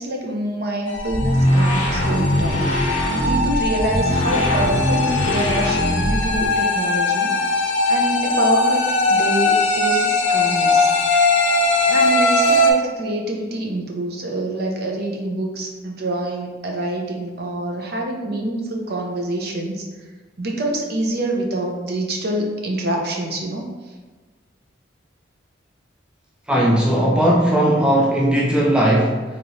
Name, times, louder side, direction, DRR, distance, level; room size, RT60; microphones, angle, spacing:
voice 1, 0.0-2.6 2.9-7.3 7.9-10.9 11.9-19.8 20.4-23.9, right 1 dB, 55° right, 0 dB, 0.7 m, -26 dB
sound 1, 0.9-12.7, left 2 dB, 65° left, 0.6 m, -20 dB
sound 2, 1.0-6.5, equal, 40° left, 1.2 m, -21 dB
voice 2, 26.5-29.2, right 1 dB, 5° right, -2 dB, 0.3 m, -17 dB
4.6 x 3.0 x 2.7 m, 1.3 s
head